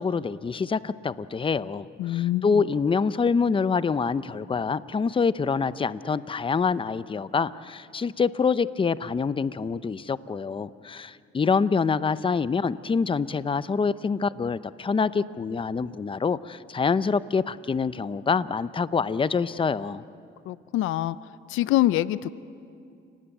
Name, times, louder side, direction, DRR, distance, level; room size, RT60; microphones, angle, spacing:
voice 1, 0.0-20.0, left 5 dB, 25° left, 16 dB, 0.7 m, -26 dB
voice 2, 2.0-2.6 20.5-21.2 21.5-22.3, left 15 dB, 90° left, 17 dB, 0.6 m, -25 dB
30.0 x 18.5 x 9.0 m, 2.5 s
cardioid pair, 90°, 20 cm